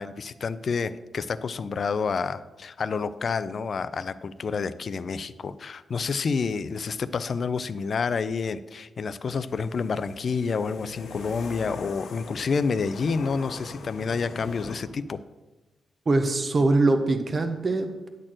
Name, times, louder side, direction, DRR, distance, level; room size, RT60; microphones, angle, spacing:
voice 1, 0.0-15.2, left 5 dB, 40° left, 13 dB, 0.4 m, -29 dB
sound 1, 9.4-14.8, left 4 dB, 90° left, 1.5 m, -42 dB
voice 2, 16.1-18.1, right 2 dB, 30° right, 6 dB, 0.7 m, -23 dB
10.5 x 4.3 x 7.5 m, 1.1 s
wide cardioid pair, 170°, 0 cm